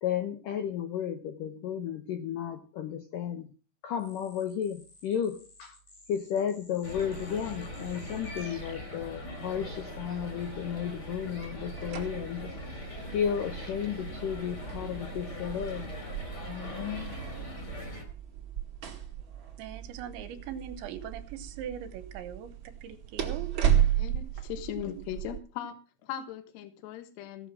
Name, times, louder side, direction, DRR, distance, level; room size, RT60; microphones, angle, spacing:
voice 1, 0.0-3.5 3.8-5.8 6.1-12.5 13.1-15.9 16.5-17.2, left 8 dB, 90° left, 1.8 m, -33 dB
sound 1, 4.0-9.8, left 3 dB, 50° left, 7.6 m, -54 dB
sound 2, 6.8-18.0, equal, 25° left, 3.4 m, -41 dB
sound 3, 11.4-25.4, right 10 dB, 40° right, 1.8 m, -34 dB
voice 2, 19.6-22.5 22.8-23.5, right 9 dB, 75° right, 3.3 m, -40 dB
voice 3, 24.0-25.8 26.0-27.5, left 9 dB, 70° left, 3.3 m, -38 dB
17.0 x 6.8 x 7.5 m
omnidirectional pair, 5.5 m